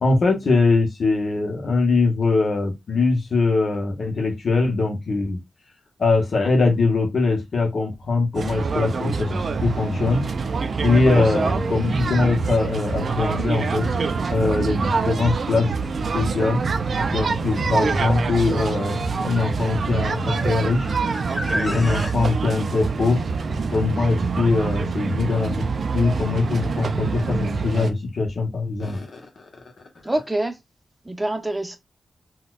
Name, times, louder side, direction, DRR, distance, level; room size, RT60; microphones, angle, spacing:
voice 1, 0.0-5.4 6.0-10.2 10.8-13.9 14.3-15.7 16.1-16.6 17.1-20.9 21.5-23.2 23.7-25.7 25.9-29.3, left 3 dB, 65° left, 0.9 m, -22 dB
sound 1, 8.3-27.9, right 4 dB, 65° right, 0.4 m, -25 dB
voice 2, 11.1-11.5 30.0-30.6 31.0-31.8, right 1 dB, 15° right, 0.7 m, -26 dB
sound 2, 12.1-12.2 13.2-22.1, left 1 dB, 15° left, 1.0 m, -36 dB
4.1 x 2.3 x 2.3 m
wide cardioid pair, 90°, 0 cm